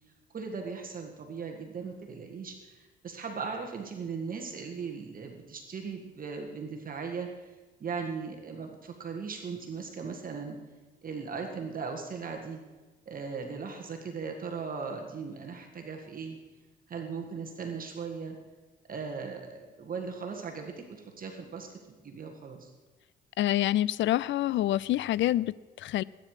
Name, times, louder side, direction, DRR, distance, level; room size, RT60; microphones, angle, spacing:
voice 1, 0.3-7.5 7.8-10.6 11.0-12.6 13.1-16.4 16.9-18.4 18.9-22.7, right 5 dB, 45° right, 1.8 m, -38 dB
voice 2, 23.4-26.0, left 14 dB, 70° left, 0.4 m, -27 dB
20.5 x 9.5 x 4.9 m
cardioid pair, 90°, 20 cm